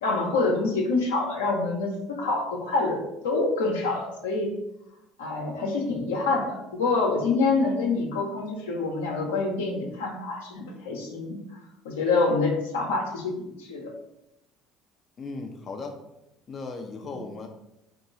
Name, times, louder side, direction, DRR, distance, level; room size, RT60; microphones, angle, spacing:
voice 1, 0.0-4.5 5.2-11.4 11.8-13.9 17.0-17.1, left 3 dB, 85° left, 0 dB, 0.8 m, -26 dB
voice 2, 15.2-16.0 16.5-17.5, left 3 dB, 40° left, 3 dB, 0.5 m, -36 dB
3.8 x 2.9 x 3.9 m, 0.86 s
hypercardioid pair, 65°, 0 cm